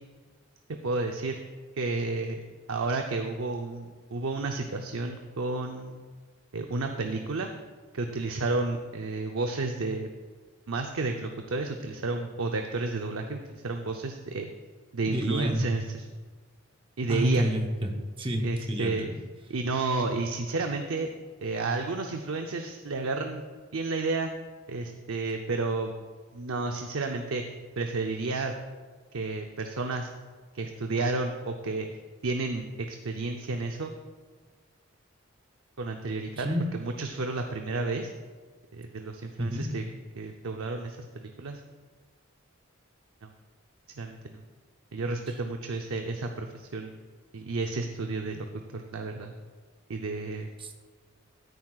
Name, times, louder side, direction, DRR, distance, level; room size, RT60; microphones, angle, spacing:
voice 1, 0.8-1.4 1.8-2.4 2.7-6.0 6.5-7.5 7.9-10.1 10.7-14.5 14.9-16.0 17.0-17.5 18.4-19.1 19.5-21.1 21.4-23.5 23.7-24.3 24.7-25.9 26.3-27.4 27.8-28.5 29.1-30.1 30.5-31.9 32.2-33.9 35.8-38.1 38.7-39.8 40.1-41.6 43.2-43.3 44.0-44.4 44.9-46.9 47.3-49.3 49.9-50.5, right 3 dB, 85° right, 4 dB, 0.6 m, -31 dB
voice 2, 15.1-15.7 17.1-17.9 18.2-19.2 36.3-36.7 39.4-39.7 50.6-50.7, equal, 25° right, 3 dB, 0.9 m, -29 dB
13.5 x 9.6 x 2.4 m, 1.5 s
head